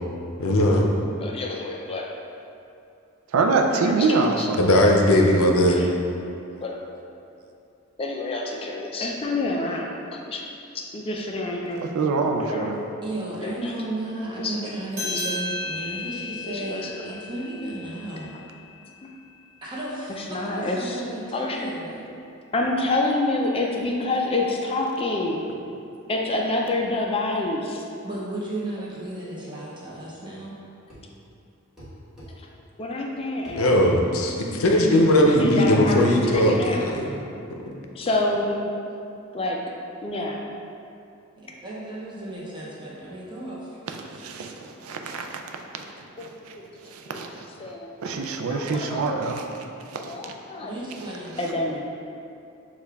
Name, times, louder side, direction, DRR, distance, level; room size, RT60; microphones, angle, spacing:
voice 1, 0.4-0.9 4.6-5.8 33.6-37.1, left 1 dB, 80° left, 0 dB, 0.6 m, -18 dB
voice 2, 1.2-2.0 3.8-4.5 5.7-5.9 6.6-6.8 8.0-10.4 10.9-11.8 12.4-12.8 13.4-13.7 14.2-15.4 16.4-17.2 20.1-21.0 21.3-21.7 22.5-25.4 26.1-27.8 32.3-32.5 32.8-33.7 35.4-37.0 37.9-38.7 39.3-39.6 40.0-40.4 46.2-46.6 47.0-47.2 47.6-47.9 48.5-49.3 50.0-50.8 51.4-51.8, left 2 dB, 25° left, 0 dB, 0.4 m, -28 dB
voice 3, 3.3-4.8 11.9-12.8 43.9-45.4 45.7-45.8 46.2-46.6 46.8-47.5 48.0-50.3, right 3 dB, 85° right, 3 dB, 0.4 m, -26 dB
voice 4, 13.0-18.3 19.6-22.1 28.0-30.5 41.4-43.8 50.6-51.7, right 1 dB, 25° right, -6 dB, 0.8 m, -34 dB
sound 1, 14.9-19.8, left 2 dB, 45° right, 1.4 m, -35 dB
sound 2, 30.9-31.1 31.8-32.3 33.5-33.6 34.6-34.8 35.1-35.3 36.3-36.5, right 1 dB, ahead, 1.2 m, -43 dB
6.3 x 2.4 x 3.4 m, 2.6 s
head